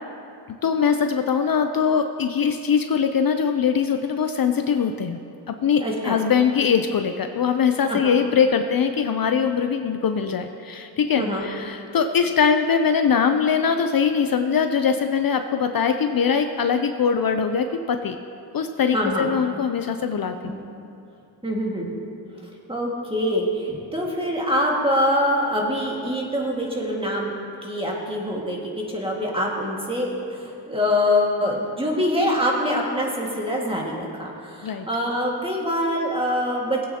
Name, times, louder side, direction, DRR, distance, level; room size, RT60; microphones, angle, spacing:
voice 1, 0.6-5.2 5.5-18.2 18.5-20.3 34.6-34.9, left 6 dB, 55° left, 7 dB, 0.5 m, -22 dB
voice 2, 5.8-6.2 7.9-8.1 11.2-11.5 18.9-19.3 20.4-20.6 21.4-21.9 22.7-27.3 27.6-36.9, left 1 dB, 10° right, -2 dB, 1.8 m, -24 dB
19.0 x 8.4 x 2.9 m, 2.6 s
wide cardioid pair, 100°, 44 cm